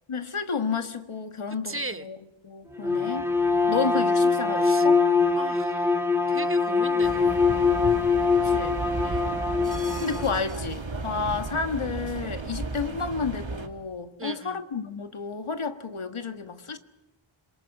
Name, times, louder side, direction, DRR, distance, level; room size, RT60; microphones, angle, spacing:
voice 1, 0.1-2.2 2.4-3.3 3.7-5.0 8.3-8.8 10.0-16.8, left 5 dB, 85° left, 1.7 m, -31 dB
voice 2, 1.5-2.1 4.6-4.9 5.4-6.0 6.3-8.0 9.0-9.5 14.2-14.6, right 2 dB, 25° right, 1.0 m, -39 dB
Bowed string instrument, 2.8-10.3, left 4 dB, 5° right, 2.0 m, -23 dB
sound 1, 7.0-13.7, right 3 dB, 65° right, 2.2 m, -34 dB
26.5 x 22.5 x 7.3 m
wide cardioid pair, 65°, 48 cm